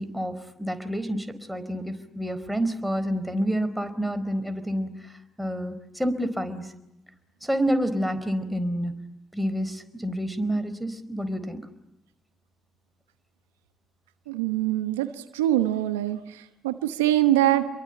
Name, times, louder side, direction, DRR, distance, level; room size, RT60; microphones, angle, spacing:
voice 1, 0.0-5.1 5.4-6.7 7.4-8.9 9.3-11.6, equal, 5° right, 9 dB, 4.4 m, -28 dB
voice 2, 14.3-17.7, right 13 dB, 85° right, 11 dB, 1.0 m, -24 dB
28.5 x 23.0 x 9.1 m, 0.85 s
hypercardioid pair, 45°, 0 cm